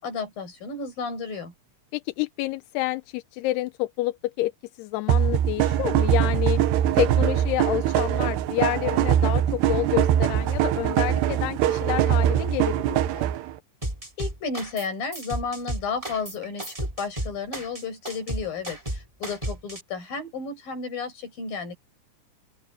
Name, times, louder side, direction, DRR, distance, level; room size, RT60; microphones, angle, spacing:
voice 1, 0.0-1.5 14.2-21.8, left 4 dB, 55° left, 8.2 m, -32 dB
voice 2, 1.9-4.5 4.8-6.6 6.9-13.2, left 18 dB, 80° left, 2.6 m, -28 dB
sound 1, 5.1-13.5, right 11 dB, 80° right, 3.2 m, -22 dB
sound 2, 13.8-14.9 15.1-19.8, right 1 dB, 10° right, 3.3 m, -33 dB
open air
omnidirectional pair, 4.9 m